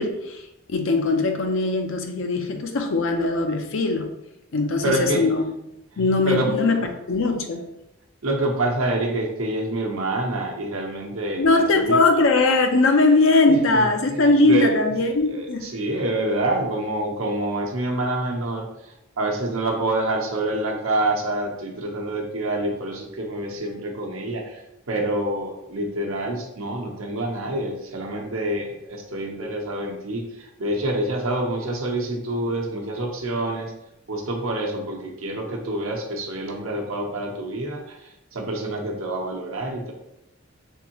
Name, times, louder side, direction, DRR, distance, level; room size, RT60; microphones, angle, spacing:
voice 1, 0.0-4.1 4.5-5.4 6.0-6.8 7.1-7.7 11.4-15.7, left 2 dB, 70° left, 5 dB, 0.6 m, -20 dB
voice 2, 4.8-5.2 5.9-6.6 8.2-12.0 13.5-14.7 15.3-33.7 34.1-39.9, right 1 dB, 75° right, 1 dB, 0.8 m, -27 dB
3.6 x 3.5 x 2.9 m, 0.86 s
head